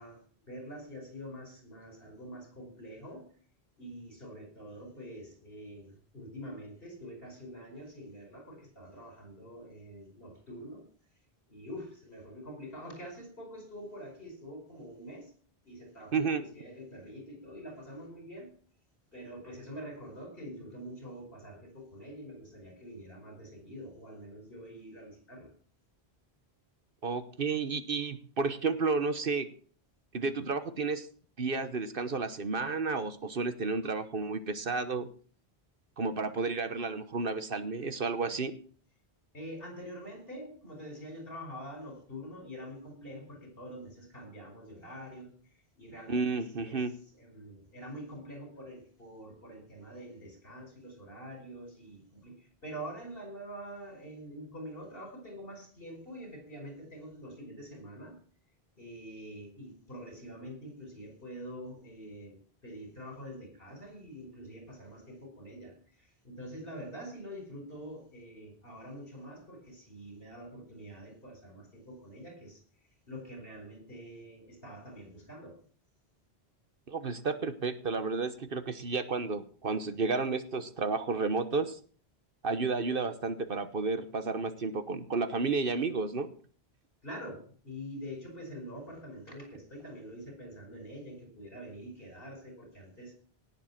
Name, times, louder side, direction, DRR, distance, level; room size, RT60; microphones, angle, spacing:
voice 1, 0.0-3.2 3.8-10.8 11.5-15.3 15.7-18.5 19.1-25.5 39.3-45.3 45.8-46.3 46.6-46.8 47.1-58.2 58.8-72.6 73.1-75.6 87.0-93.1, equal, 60° left, 4 dB, 5.5 m, -45 dB
voice 2, 27.0-29.5 30.1-31.1 31.4-35.1 36.0-38.5 46.1-46.9 76.9-81.8 82.4-86.3, right 4 dB, 60° right, 12 dB, 1.3 m, -31 dB
18.0 x 7.5 x 5.9 m, 0.43 s
omnidirectional pair, 1.1 m